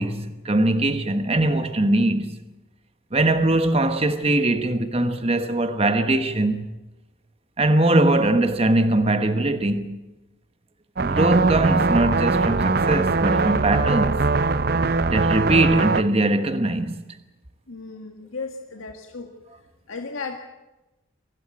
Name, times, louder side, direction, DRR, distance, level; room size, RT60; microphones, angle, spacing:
voice 1, 0.0-2.4 3.1-6.7 7.6-10.0 11.0-14.3 15.1-17.0, right 2 dB, 30° right, 1.2 m, -21 dB
sound 1, 11.0-16.0, right 3 dB, 45° right, 0.7 m, -21 dB
voice 2, 17.7-19.3 19.9-20.4, left 4 dB, 80° left, 1.8 m, -35 dB
24.0 x 15.5 x 9.0 m
head